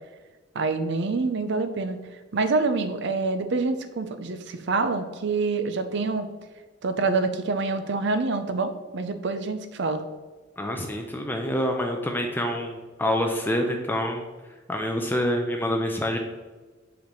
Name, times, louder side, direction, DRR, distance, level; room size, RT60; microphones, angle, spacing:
voice 1, 0.5-2.0 2.3-6.3 6.8-10.0, right 3 dB, 65° right, 9 dB, 0.6 m, -26 dB
voice 2, 10.6-14.2 14.7-16.2, equal, 10° left, 2 dB, 0.5 m, -26 dB
7.0 x 5.1 x 3.1 m, 1.3 s
head